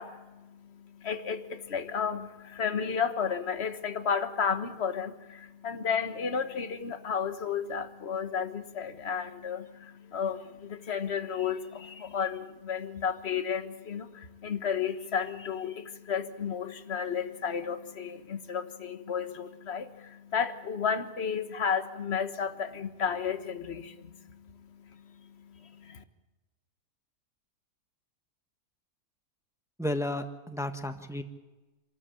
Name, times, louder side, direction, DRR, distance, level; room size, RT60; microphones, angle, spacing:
voice 1, 0.0-26.0, left 7 dB, 45° left, 1.5 m, -33 dB
voice 2, 29.8-31.2, left 1 dB, ahead, 1.3 m, -32 dB
27.5 x 13.5 x 8.7 m
omnidirectional pair, 1.7 m